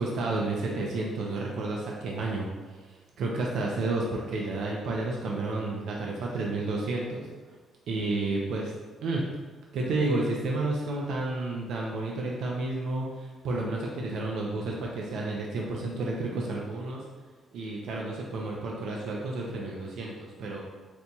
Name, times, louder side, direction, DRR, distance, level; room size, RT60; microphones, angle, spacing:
voice 1, 0.0-2.5 3.2-7.3 7.9-8.7 9.0-9.2 9.7-17.0 17.5-20.6, right 2 dB, 70° right, -2 dB, 0.4 m, -31 dB
4.2 x 2.2 x 2.7 m, 1.3 s
cardioid pair, 165°, 0 cm